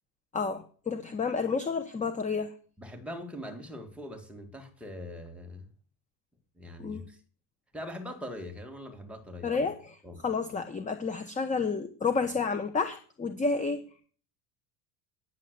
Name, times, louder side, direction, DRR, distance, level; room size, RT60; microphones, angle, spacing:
voice 1, 0.3-2.5 6.8-7.1 9.4-10.0 10.2-13.8, left 4 dB, 15° left, 0.9 m, -30 dB
voice 2, 2.8-5.7 6.6-7.2 7.7-9.6 10.0-10.3, left 1 dB, 5° right, 2.0 m, -42 dB
9.8 x 7.6 x 8.0 m
cardioid pair, 145°, 47 cm